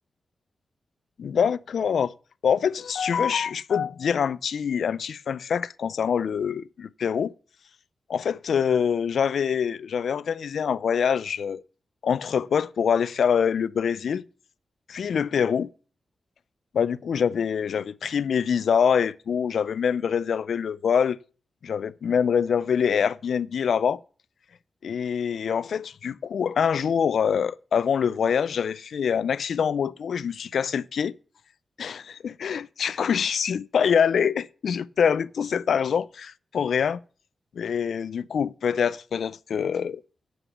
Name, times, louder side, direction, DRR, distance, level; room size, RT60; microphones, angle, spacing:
voice 1, 1.2-2.1 2.4-7.3 8.1-11.6 12.0-14.2 14.9-15.7 16.7-21.2 21.6-24.0 24.8-31.1 31.8-37.0 37.6-40.0, left 7 dB, 80° left, 0.4 m, -25 dB
9.0 x 6.0 x 7.9 m
wide cardioid pair, 110°, 0 cm